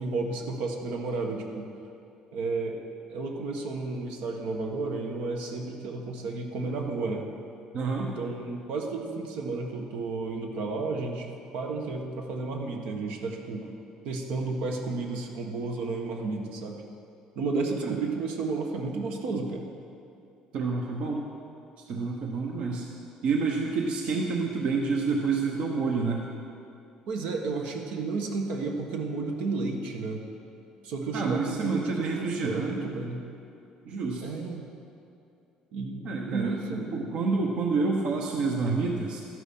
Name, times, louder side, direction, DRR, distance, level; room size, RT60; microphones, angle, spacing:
voice 1, 0.0-1.7 2.3-2.8 3.1-7.3 8.0-13.7 14.0-16.8 17.3-19.7 27.1-30.2 30.8-33.2 34.2-34.7 35.7-36.9, right 3 dB, 80° right, 2 dB, 1.5 m, -32 dB
voice 2, 7.7-8.1 17.8-17.9 20.5-21.3 21.9-22.8 23.2-26.2 31.1-32.9 33.9-34.2 36.0-36.6 36.9-39.2, right 4 dB, 60° right, 0 dB, 1.1 m, -28 dB
13.0 x 11.0 x 5.6 m, 2.6 s
cardioid pair, 145°, 2 cm